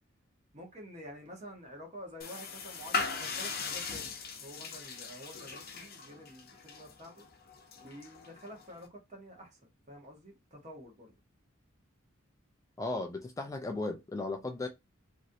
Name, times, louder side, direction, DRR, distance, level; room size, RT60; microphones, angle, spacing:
voice 1, 0.5-4.2 4.4-7.3 7.8-11.1, equal, 35° right, 1.1 m, -49 dB
sound 1, 2.2-8.9, left 4 dB, 45° left, 0.7 m, -39 dB
voice 2, 12.8-14.7, left 2 dB, 15° left, 0.4 m, -36 dB
3.0 x 2.6 x 2.7 m
head